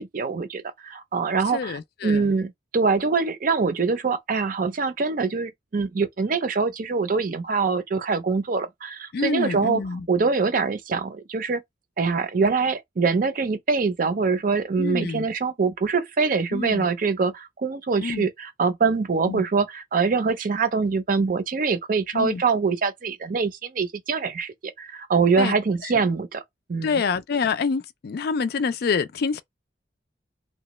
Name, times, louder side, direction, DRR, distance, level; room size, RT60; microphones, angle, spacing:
voice 1, 0.0-9.8 10.1-11.6 12.0-26.4 26.7-27.0, right 4 dB, 50° right, 0.5 m, -24 dB
voice 2, 1.5-2.3 9.1-10.1 14.8-15.2 16.5-16.9 18.0-18.3 19.3-19.4 22.1-22.4 25.4-25.6 25.8-25.9 26.8-29.4, left 5 dB, 60° left, 0.4 m, -27 dB
2.9 x 2.2 x 3.0 m
head